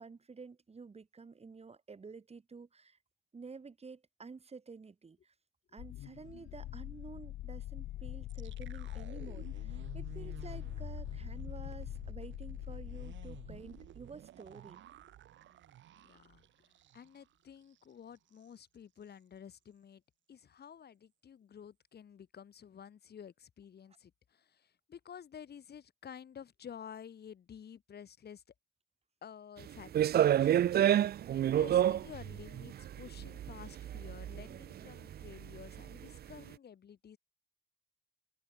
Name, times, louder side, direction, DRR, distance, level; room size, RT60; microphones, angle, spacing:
voice 1, 0.0-3.0 3.3-5.3 5.7-14.8, right 4 dB, 30° right, 3.9 m, -50 dB
sound 1, 5.8-14.0, left 15 dB, 75° left, 0.7 m, -43 dB
sound 2, 8.3-17.3 17.6-17.8 18.2-18.5, right 12 dB, 70° right, 1.9 m, -53 dB
voice 2, 15.9-16.4 16.9-20.0 20.3-28.4 29.2-30.7 31.3-37.2, left 8 dB, 55° left, 5.3 m, -51 dB
sound 3, 29.7-36.0, right 11 dB, 50° right, 0.5 m, -29 dB
cardioid pair, 90°, 20 cm